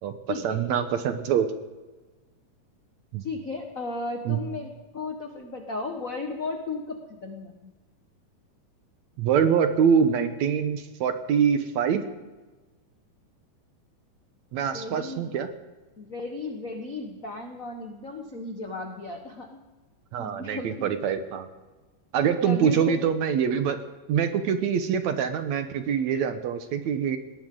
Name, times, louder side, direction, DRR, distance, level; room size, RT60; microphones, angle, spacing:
voice 1, 0.4-1.5 3.1-3.2 4.3-4.4 9.2-12.0 14.5-15.5 20.1-21.5 22.1-23.8 24.1-27.2, right 7 dB, 70° right, 9 dB, 2.0 m, -24 dB
voice 2, 3.2-7.7 14.7-15.3 16.0-19.6 20.2-21.0 22.4-23.1, left 3 dB, 75° left, 3 dB, 0.7 m, -35 dB
20.0 x 18.5 x 3.8 m, 1.2 s
omnidirectional pair, 3.8 m